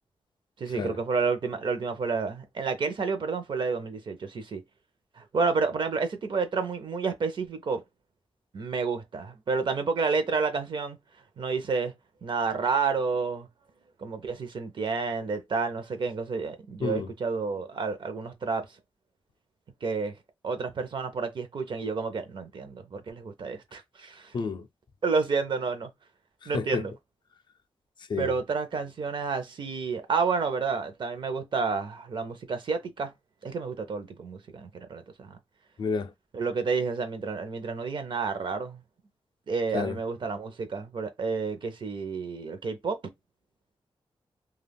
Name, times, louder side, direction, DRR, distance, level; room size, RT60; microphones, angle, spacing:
voice 1, 0.6-4.6 5.2-7.8 8.5-11.0 11.4-11.9 12.2-13.5 14.0-18.7 19.8-20.1 20.4-24.4 25.0-25.9 26.5-26.9 28.1-33.1 33.4-35.4 36.3-38.8 39.5-43.0, right 4 dB, 60° right, 0.6 m, -30 dB
voice 2, 24.3-24.7 26.4-26.8 28.1-28.3 35.8-36.1 39.7-40.0, left 5 dB, 55° left, 0.4 m, -30 dB
2.3 x 2.1 x 3.4 m
wide cardioid pair, 120°, 10 cm